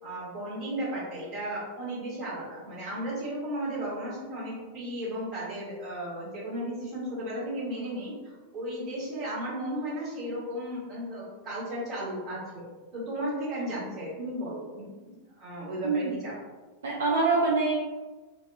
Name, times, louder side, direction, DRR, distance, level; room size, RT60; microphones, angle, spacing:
voice 1, 0.0-12.6 12.9-16.4, right 1 dB, 30° right, -8 dB, 1.2 m, -35 dB
voice 2, 16.8-17.7, right 3 dB, 65° right, -4 dB, 0.3 m, -25 dB
2.3 x 2.3 x 2.4 m, 1.3 s
figure-of-eight pair, 90°, 0 cm